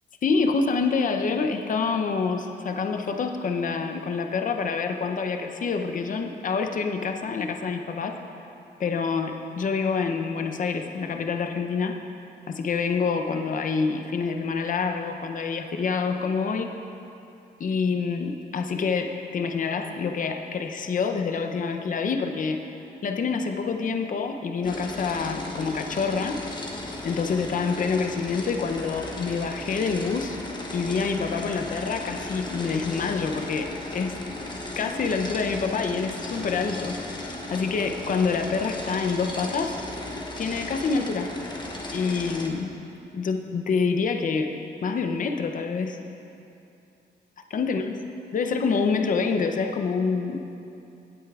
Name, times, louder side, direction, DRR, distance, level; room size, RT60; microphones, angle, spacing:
voice 1, 0.2-8.2 8.8-12.0 12.5-16.7 17.6-22.6 23.0-26.4 27.0-30.4 30.7-34.1 34.8-39.7 40.4-41.3 41.9-42.7 43.1-46.0 47.5-47.9 48.3-50.4, left 5 dB, 50° left, 5 dB, 0.6 m, -27 dB
sound 1, 24.6-42.5, left 2 dB, 25° left, 0.9 m, -36 dB
17.5 x 8.0 x 2.4 m, 2.7 s
cardioid pair, 115°, 18 cm